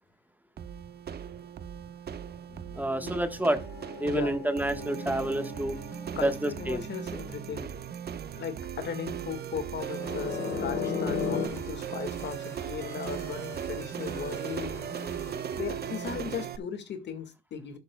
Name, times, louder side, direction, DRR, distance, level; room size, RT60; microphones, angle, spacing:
sound 1, 0.6-16.6, right 8 dB, 55° right, 1.0 m, -38 dB
sound 2, 2.5-7.4 9.9-11.5, left 5 dB, 85° left, 3.3 m, -36 dB
voice 1, 2.7-3.6 4.0-5.8 6.2-6.8, right 1 dB, 10° right, 1.3 m, -28 dB
voice 2, 4.0-4.4 6.2-7.7 8.3-14.8 15.5-17.8, left 6 dB, 60° left, 1.9 m, -37 dB
sound 3, 9.8-16.2, left 1 dB, 15° left, 3.9 m, -49 dB
11.5 x 10.5 x 2.3 m
cardioid pair, 90°, 20 cm